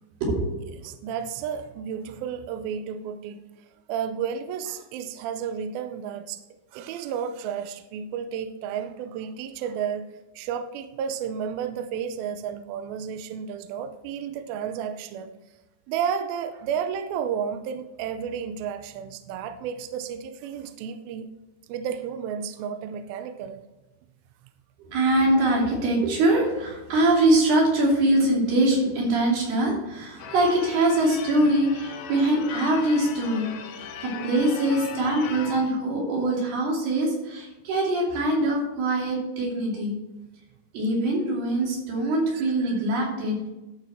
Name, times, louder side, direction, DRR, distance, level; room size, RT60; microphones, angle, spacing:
voice 1, 0.2-0.5 24.9-39.9 40.7-43.5, right 1 dB, 70° right, -2 dB, 4.6 m, -23 dB
voice 2, 0.8-6.4 6.7-10.1 10.4-15.3 15.9-21.3 21.7-23.6 42.3-42.5, right 7 dB, 85° right, 8 dB, 2.2 m, -32 dB
Church bell / Car / Alarm, 30.2-35.8, left 7 dB, 85° left, 2.9 m, -38 dB
12.0 x 6.3 x 4.4 m, 1.0 s
omnidirectional pair, 4.9 m